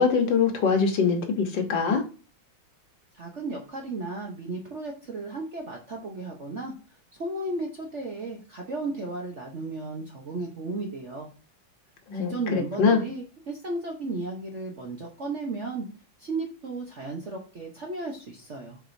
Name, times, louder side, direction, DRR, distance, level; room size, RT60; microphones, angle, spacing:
voice 1, 0.0-2.0 12.1-13.0, left 5 dB, 65° left, 5 dB, 1.7 m, -23 dB
voice 2, 3.1-6.7 7.1-11.3 12.1-15.9 16.2-18.8, right 2 dB, 50° right, 0 dB, 0.9 m, -34 dB
7.5 x 4.9 x 2.6 m, 0.36 s
omnidirectional pair, 2.3 m